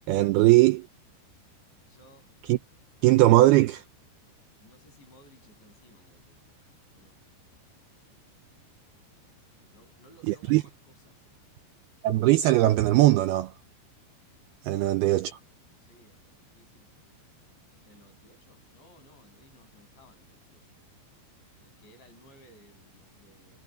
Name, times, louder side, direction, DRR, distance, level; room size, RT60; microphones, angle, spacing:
voice 1, 0.1-0.9 2.5-2.6 3.0-3.8 10.3-10.6 12.0-13.5 14.6-15.4, right 17 dB, 85° right, 2.3 m, -20 dB
voice 2, 1.9-2.3 4.6-6.4 6.9-7.2 9.7-11.2 14.6-15.2 15.9-17.2 17.8-21.1 21.6-23.6, equal, 75° left, 10.0 m, -59 dB
omnidirectional pair, 5.2 m